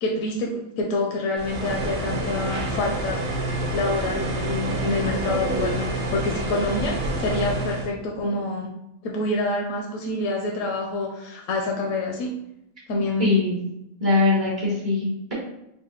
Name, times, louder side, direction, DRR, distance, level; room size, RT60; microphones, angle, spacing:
voice 1, 0.0-3.2 3.7-8.7 9.0-12.3 12.9-13.3, left 2 dB, 75° left, 0 dB, 1.0 m, -27 dB
sound 1, 1.4-7.9, right 2 dB, 85° right, 1.1 m, -28 dB
voice 2, 13.2-13.6 14.0-15.3, left 2 dB, 25° right, -6 dB, 0.6 m, -22 dB
3.6 x 2.2 x 3.8 m, 0.83 s
omnidirectional pair, 1.4 m